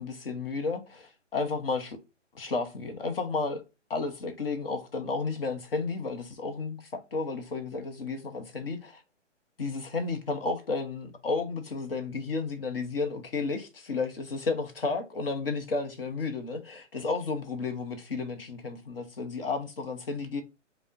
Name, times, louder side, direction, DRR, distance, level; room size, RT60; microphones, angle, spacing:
voice 1, 0.0-2.0 2.3-3.6 3.9-9.0 9.6-20.4, left 4 dB, 50° left, 0.7 m, -32 dB
5.1 x 2.1 x 2.4 m
figure-of-eight pair, 135°, 37 cm